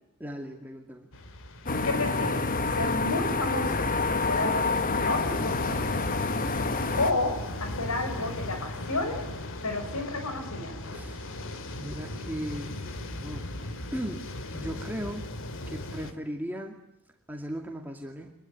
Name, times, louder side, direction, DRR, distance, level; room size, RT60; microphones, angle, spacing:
voice 1, 0.2-1.1 10.9-11.4 11.8-12.8 13.2-15.3 15.7-16.8 17.3-18.3, equal, 10° right, 1 dB, 2.3 m, -37 dB
sound 1, 1.1-16.1, left 1 dB, 60° left, 2.4 m, -38 dB
sound 2, 1.7-7.1, left 3 dB, 40° left, 1.5 m, -28 dB
voice 2, 1.8-2.4 2.7-3.9 4.3-5.8 7.0-9.2 9.6-10.8, left 2 dB, 75° left, 6 dB, 5.6 m, -31 dB
26.5 x 22.0 x 9.5 m, 0.85 s
head